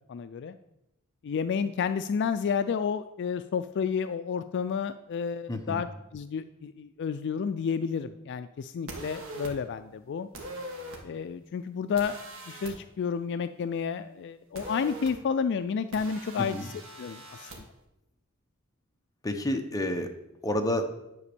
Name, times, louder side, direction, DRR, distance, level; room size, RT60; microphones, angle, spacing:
voice 1, 0.1-0.6 1.2-10.3 11.0-12.2 12.5-16.7 17.0-17.6, left 6 dB, 55° left, 11 dB, 0.3 m, -31 dB
voice 2, 5.5-5.8 16.4-16.6 19.2-20.1 20.4-20.9, left 1 dB, 15° left, 5 dB, 0.8 m, -29 dB
sound 1, 8.9-9.5 10.3-11.0 12.0-12.7 14.5-15.1 15.9-17.6, right 1 dB, 65° right, 1.8 m, -41 dB
10.0 x 4.2 x 6.8 m, 0.88 s
head